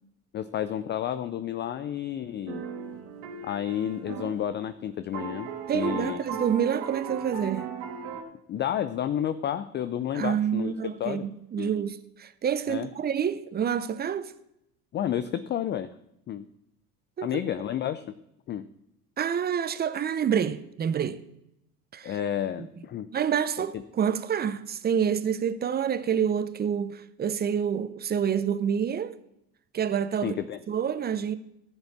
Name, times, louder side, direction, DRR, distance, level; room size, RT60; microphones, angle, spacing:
voice 1, 0.3-2.7 3.4-5.5 5.7-6.2 8.5-11.3 11.6-11.7 12.7-12.9 14.9-15.9 16.3-16.4 17.2-18.1 18.5-18.7 22.0-23.1 30.2-30.6, left 10 dB, 25° left, 0.4 m, -31 dB
sound 1, 2.5-4.4 4.7-4.8 5.1-8.2, right 6 dB, 60° right, 2.0 m, -37 dB
voice 2, 5.7-7.7 10.1-14.3 17.2-17.4 19.2-21.2 21.9-22.2 22.6-22.7 23.1-29.2 29.7-30.4 30.7-31.4, right 8 dB, 20° right, 0.6 m, -28 dB
13.5 x 7.4 x 4.1 m
hypercardioid pair, 75°, 48 cm